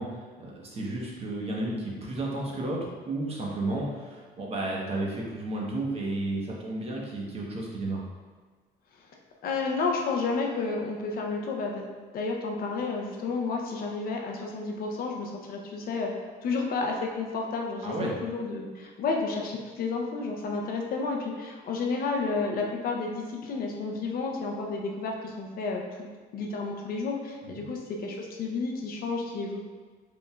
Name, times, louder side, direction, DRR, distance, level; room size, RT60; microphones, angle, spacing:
voice 1, 0.0-8.0 17.8-18.1 27.6-27.7, right 2 dB, 35° right, -3 dB, 1.0 m, -32 dB
voice 2, 9.4-11.9 12.1-16.1 16.4-25.8 26.3-29.6, left 4 dB, 60° left, 1 dB, 0.7 m, -31 dB
5.0 x 3.6 x 2.3 m, 1.5 s
cardioid pair, 110°, 17 cm